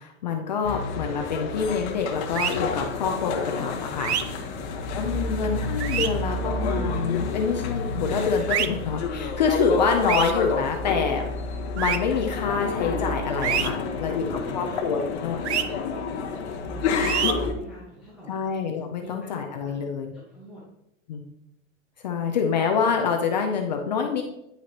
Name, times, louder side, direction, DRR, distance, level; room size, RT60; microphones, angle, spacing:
voice 1, 0.0-4.4 4.9-11.3 11.8-13.7 14.0-14.2 14.5-15.4 18.3-20.1 21.1-21.2 22.0-24.2, left 6 dB, 35° left, 3 dB, 0.5 m, -26 dB
sound 1, 0.6-17.5, left 4 dB, 50° left, 1.3 m, -29 dB
sound 2, 2.3-2.5 4.0-4.2 5.8-6.1 8.5-8.7 10.1-10.3 11.8-12.0 13.4-13.7 15.4-15.6 17.0-17.3, right 9 dB, 55° right, 0.6 m, -25 dB
voice 2, 4.3-4.6 13.7-18.5 19.0-19.7 20.1-20.7, equal, 5° right, -10 dB, 1.0 m, -46 dB
9.6 x 5.7 x 2.9 m, 0.85 s
supercardioid pair, 175°, 41 cm